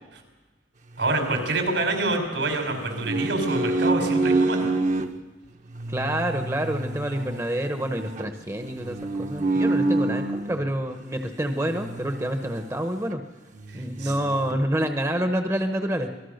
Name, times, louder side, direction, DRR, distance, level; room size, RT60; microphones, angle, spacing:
sound 1, 1.0-2.2 2.7-5.1 5.7-10.7 11.6-12.8 13.1-13.2 13.5-14.5, right 2 dB, 45° right, 1.1 m, -28 dB
voice 1, 1.0-4.7 13.7-14.1, right 2 dB, 80° right, 4 dB, 5.1 m, -26 dB
voice 2, 5.9-13.2 13.7-16.1, right 1 dB, 15° right, 6 dB, 1.0 m, -27 dB
26.0 x 18.5 x 6.6 m, 1.2 s
head